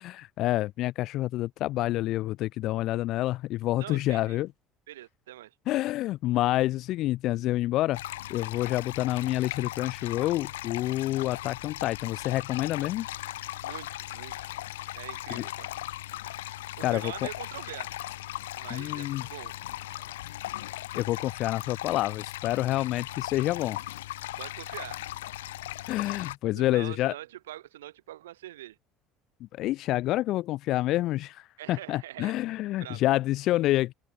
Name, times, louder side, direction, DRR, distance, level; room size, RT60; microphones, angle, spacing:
voice 1, 0.0-4.5 5.7-8.0 8.3-13.1 15.3-15.4 16.8-17.3 18.7-19.3 20.9-23.8 25.9-27.1 29.5-33.9, left 16 dB, 60° left, 1.2 m, -28 dB
voice 2, 3.8-4.4 4.9-5.5 13.6-14.4 14.9-15.7 16.8-18.0 18.6-19.5 24.4-25.0 26.5-28.8 31.6-32.3 32.8-33.0, right 14 dB, 80° right, 7.8 m, -43 dB
sound 1, 7.9-26.4, left 15 dB, 75° left, 0.7 m, -38 dB
open air
hypercardioid pair, 65°, 0 cm